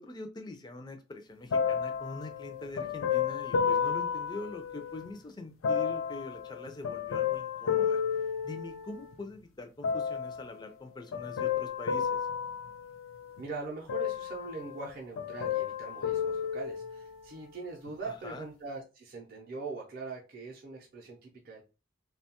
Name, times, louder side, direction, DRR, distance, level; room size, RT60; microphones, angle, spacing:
voice 1, 0.0-12.3 18.0-18.5, left 2 dB, 20° left, 6 dB, 0.3 m, -44 dB
sound 1, 1.5-5.1 5.6-9.1 9.8-10.5 11.1-13.4 13.9-14.9 15.2-17.2 17.9-18.0, left 7 dB, 85° left, 0.4 m, -32 dB
voice 2, 13.4-21.6, right 4 dB, 45° right, -1 dB, 0.5 m, -42 dB
2.7 x 2.2 x 2.8 m, 0.31 s
head